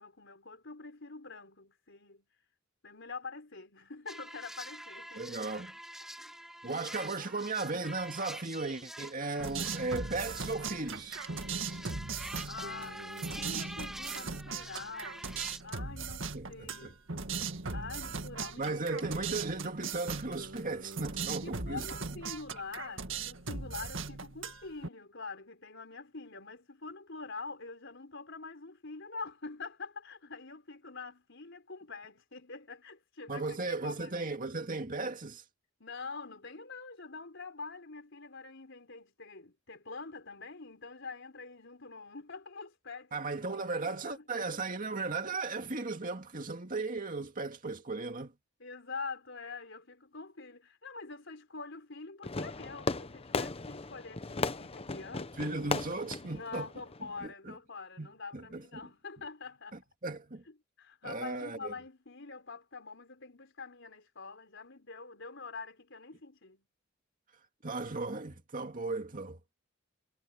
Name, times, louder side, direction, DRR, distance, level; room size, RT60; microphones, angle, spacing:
voice 1, 0.0-2.3 2.8-5.4 6.2-6.3 11.6-15.4 15.6-17.0 17.7-19.2 21.4-34.3 35.8-43.4 43.7-44.2 48.6-55.5 56.2-59.8 60.5-66.7, left 4 dB, 60° left, 4.8 m, -45 dB
sound 1, 4.1-15.6, equal, ahead, 2.0 m, -46 dB
voice 2, 5.2-5.7 6.6-11.2 16.3-16.9 17.4-17.7 18.6-21.9 33.3-35.4 43.1-48.3 55.4-56.7 57.2-57.5 58.0-58.6 60.0-60.4 61.0-61.7 67.6-69.4, right 3 dB, 40° right, 2.2 m, -36 dB
sound 2, 9.4-24.9, right 4 dB, 65° right, 2.1 m, -39 dB
Fireworks, 52.2-57.3, left 3 dB, 30° left, 0.9 m, -37 dB
head